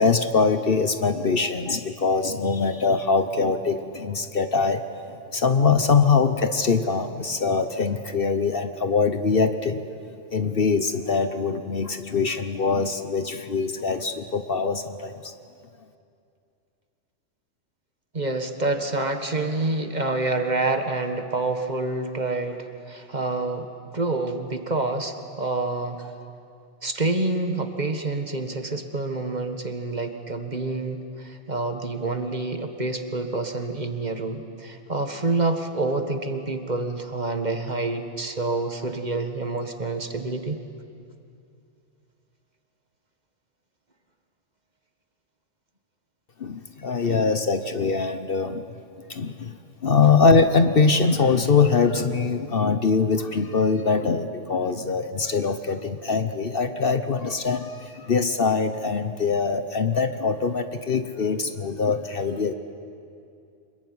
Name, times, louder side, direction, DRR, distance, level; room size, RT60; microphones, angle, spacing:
voice 1, 0.0-4.8 5.3-9.8 10.3-15.3 46.4-48.6 49.1-49.5 49.8-62.5, left 4 dB, 50° left, 9 dB, 1.1 m, -23 dB
voice 2, 18.1-26.1 26.8-40.6, right 2 dB, 35° right, 6 dB, 1.7 m, -27 dB
25.5 x 22.0 x 9.7 m, 2.5 s
omnidirectional pair, 1.3 m